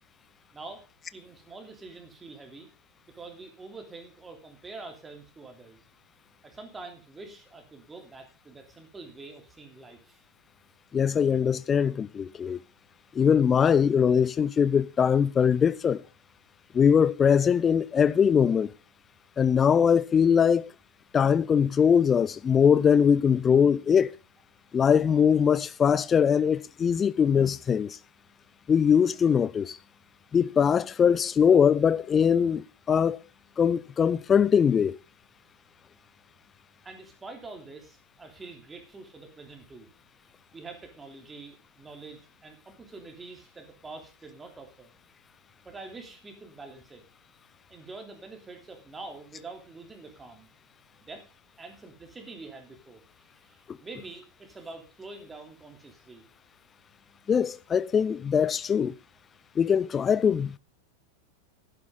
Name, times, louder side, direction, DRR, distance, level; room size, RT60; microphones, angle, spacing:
voice 1, 0.5-0.8 1.1-2.7 3.1-5.8 6.4-10.2 36.8-39.9 40.5-44.9 45.6-47.0 47.7-50.5 51.0-51.2 51.6-56.2, right 3 dB, 15° right, 3.1 m, -45 dB
voice 2, 10.9-12.6 13.1-16.0 16.7-18.7 19.4-20.7 21.1-24.1 24.7-28.0 28.7-29.8 30.3-33.2 33.6-35.0 57.3-58.9 59.6-60.6, left 7 dB, 20° left, 0.5 m, -22 dB
11.0 x 11.0 x 3.8 m
figure-of-eight pair, 90°, 0 cm